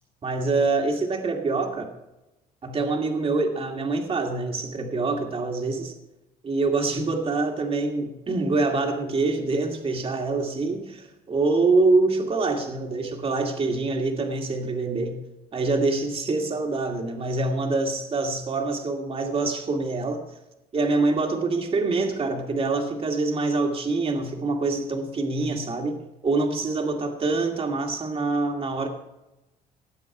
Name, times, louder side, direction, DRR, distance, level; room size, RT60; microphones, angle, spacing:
voice 1, 0.2-1.9 2.6-5.9 6.4-15.2 15.5-20.2 20.7-26.0 26.2-28.9, right 3 dB, 35° right, 3 dB, 2.2 m, -25 dB
18.5 x 7.6 x 4.8 m, 0.97 s
cardioid pair, 110°, 17 cm